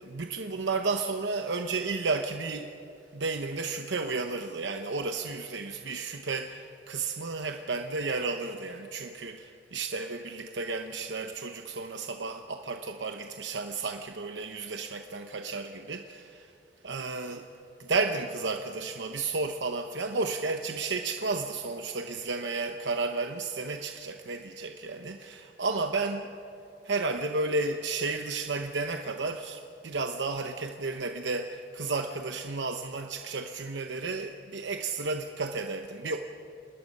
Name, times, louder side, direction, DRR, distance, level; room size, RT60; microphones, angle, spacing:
voice 1, 0.0-2.7 3.1-16.5 16.8-17.5 17.8-26.3 26.8-36.2, right 3 dB, 75° right, 6 dB, 0.9 m, -32 dB
27.5 x 20.0 x 5.4 m, 2.7 s
head